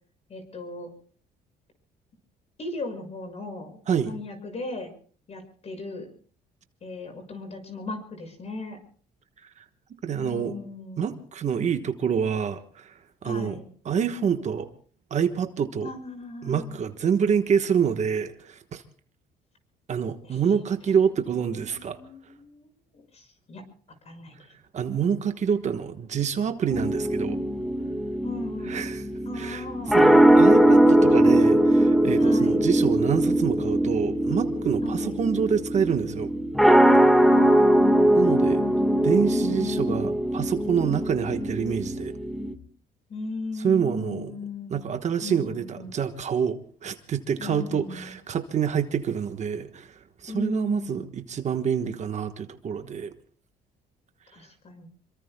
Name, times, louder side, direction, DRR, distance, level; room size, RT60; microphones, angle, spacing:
voice 1, 0.3-0.9 2.6-3.8 4.1-4.9 5.3-6.1 6.8-8.8 10.2-11.1 13.2-13.7 15.8-16.8 20.2-20.4 20.8-20.9 21.3-22.7 22.9-23.6 24.0-24.6 28.2-28.8 29.2-30.0 32.2-32.6 34.8-35.2 37.2-40.2 40.8-41.5 43.1-44.9 45.2-46.0 47.4-48.1 50.3-51.1 54.3-54.9, left 3 dB, 40° left, 7 dB, 6.2 m, -37 dB
voice 2, 10.0-10.6 11.0-14.7 15.1-15.9 16.4-18.8 19.9-22.0 24.7-27.4 28.7-29.0 29.3-29.6 29.9-36.3 38.1-38.6 39.0-42.1 43.6-44.3 44.7-53.1, right 7 dB, 45° right, 8 dB, 1.3 m, -27 dB
sound 1, 26.7-42.5, right 1 dB, ahead, 1.6 m, -21 dB
27.0 x 24.0 x 2.3 m, 0.42 s
cardioid pair, 110°, 17 cm